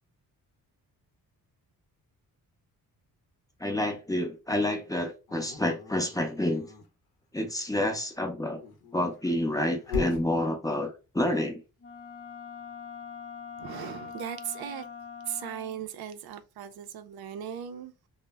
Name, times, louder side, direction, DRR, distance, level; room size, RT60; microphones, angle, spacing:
voice 1, 3.6-6.7 7.3-8.6 8.9-11.6, left 1 dB, 10° left, 0.5 m, -29 dB
Dog, 5.3-6.9 8.4-10.3, left 4 dB, 90° left, 0.7 m, -37 dB
Wind instrument woodwind instrument, 11.8-15.8, left 6 dB, 40° left, 0.7 m, -43 dB
voice 2, 13.6-14.9 15.3-18.1, right 9 dB, 85° right, 0.5 m, -38 dB
2.0 x 2.0 x 3.3 m
cardioid pair, 100°, 36 cm